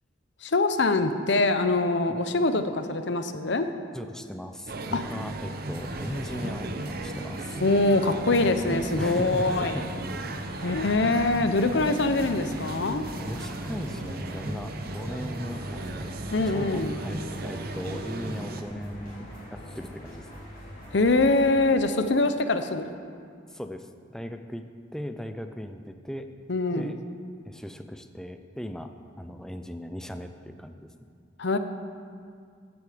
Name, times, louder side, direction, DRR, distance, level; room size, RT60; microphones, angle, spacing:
voice 1, 0.4-3.7 4.9-5.0 7.6-9.8 10.6-13.0 16.3-17.0 20.9-22.9 26.5-26.9 31.4-31.6, left 2 dB, 65° left, 9 dB, 0.7 m, -24 dB
voice 2, 3.9-7.6 9.0-10.3 13.2-16.1 16.5-20.3 23.5-26.3 26.7-27.0 27.4-28.9 29.2-30.9, equal, 5° left, 7 dB, 0.5 m, -38 dB
sound 1, 4.7-18.6, right 2 dB, 50° right, 0.7 m, -36 dB
sound 2, 5.7-21.6, equal, 50° left, 3.8 m, -44 dB
15.0 x 8.1 x 5.1 m, 2.2 s
head